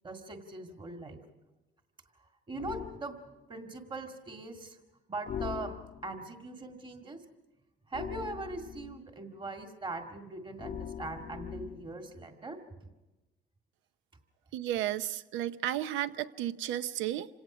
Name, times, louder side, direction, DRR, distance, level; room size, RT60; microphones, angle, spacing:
voice 1, 0.0-1.2 2.5-3.2 3.5-4.8 5.1-5.7 6.0-7.2 7.9-12.6, right 2 dB, 25° right, 4 dB, 2.0 m, -41 dB
sound 1, 2.6-3.0 5.3-6.2 7.9-9.0 10.6-12.0, left 8 dB, 45° left, 0.7 m, -41 dB
voice 2, 14.5-17.3, right 12 dB, 85° right, 14 dB, 0.8 m, -33 dB
27.0 x 17.5 x 6.1 m, 1.1 s
cardioid pair, 110°, 19 cm